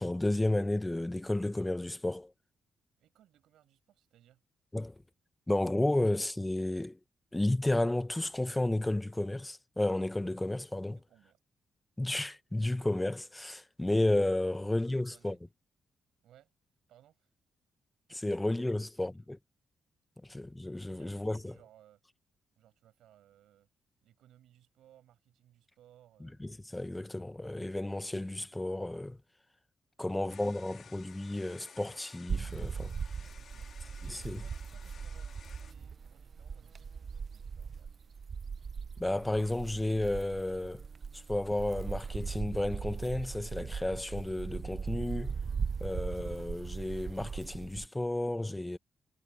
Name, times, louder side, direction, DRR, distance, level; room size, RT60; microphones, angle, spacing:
voice 1, 0.0-2.3 4.7-4.9 5.5-7.0 7.3-11.0 12.0-15.3 18.1-19.4 20.3-21.6 26.7-29.2 30.0-32.9 34.0-34.4 39.0-40.8 41.1-45.3 45.8-48.8, left 1 dB, 15° left, 1.0 m, -32 dB
voice 2, 3.0-4.4 11.0-11.4 14.9-15.4 16.2-16.5 16.9-17.3 18.2-18.4 18.7-19.1 20.9-22.0 22.6-23.7 24.0-26.4 30.0-30.6 33.3-38.0, right 12 dB, 85° right, 7.7 m, -63 dB
sound 1, 30.3-35.7, left 7 dB, 60° left, 1.8 m, -55 dB
sound 2, 32.3-47.9, right 6 dB, 50° right, 0.7 m, -39 dB
cardioid pair, 65°, 0 cm